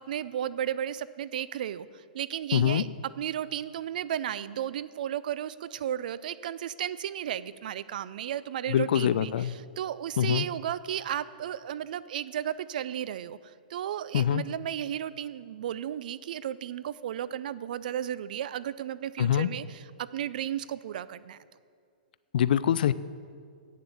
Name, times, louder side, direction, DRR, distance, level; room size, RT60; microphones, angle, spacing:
voice 1, 0.0-2.9 3.2-21.4, right 10 dB, 60° right, 17 dB, 0.4 m, -34 dB
voice 2, 2.5-2.8 8.7-9.5 10.2-10.5 14.1-14.4 19.2-19.5 22.3-22.9, left 10 dB, 65° left, 16 dB, 0.3 m, -24 dB
8.7 x 7.3 x 7.1 m, 2.2 s
hypercardioid pair, 150°, 5 cm